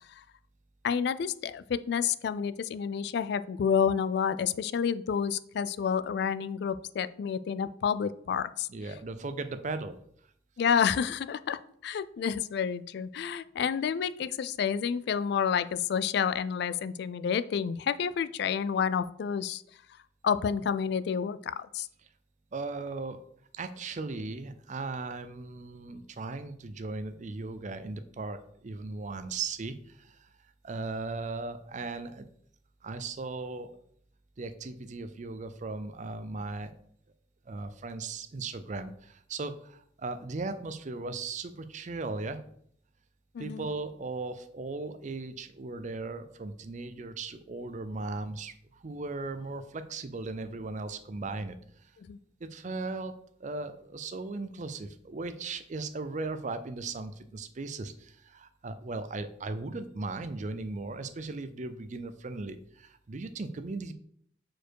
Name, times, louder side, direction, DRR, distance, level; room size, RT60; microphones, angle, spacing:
voice 1, 0.8-8.7 10.6-19.6 20.2-21.9 43.3-43.7 52.1-52.2, left 7 dB, 60° left, 14 dB, 0.3 m, -29 dB
voice 2, 8.7-10.0 22.5-23.2 23.5-30.3 30.6-32.3 32.8-33.7 34.4-36.8 37.5-42.4 43.4-51.9 52.4-53.1 53.4-63.9, right 3 dB, 40° right, 10 dB, 0.5 m, -37 dB
4.6 x 4.5 x 4.6 m, 0.65 s
head